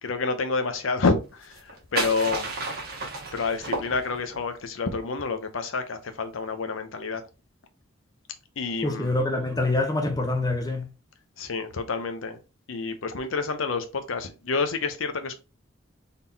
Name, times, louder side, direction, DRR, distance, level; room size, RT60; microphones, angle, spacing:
voice 1, 0.0-2.5 3.3-7.2 8.6-9.1 11.4-12.4 12.7-15.3, left 4 dB, 75° left, 0.7 m, -28 dB
sound 1, 1.4-4.5, right 3 dB, 55° right, 1.1 m, -32 dB
voice 2, 8.8-10.9, left 2 dB, 20° left, 0.7 m, -25 dB
4.0 x 3.6 x 2.7 m
head